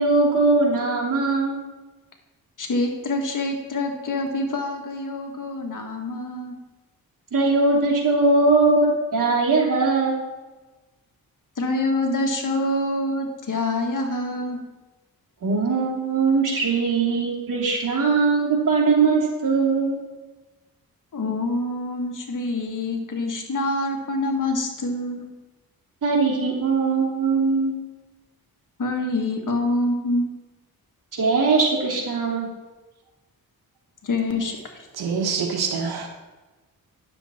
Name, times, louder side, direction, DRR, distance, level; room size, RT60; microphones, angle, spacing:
voice 1, 0.0-1.6 7.3-10.2 15.4-20.0 26.0-27.7 31.1-32.5, right 3 dB, 55° right, -4 dB, 2.9 m, -20 dB
voice 2, 2.6-6.5 11.6-14.6 21.1-25.3 28.8-30.2 34.0-34.9, left 2 dB, 55° left, 3 dB, 1.7 m, -26 dB
voice 3, 35.0-36.1, right 5 dB, 85° right, 3 dB, 1.4 m, -25 dB
10.0 x 6.9 x 4.2 m, 1.2 s
cardioid pair, 75°, 37 cm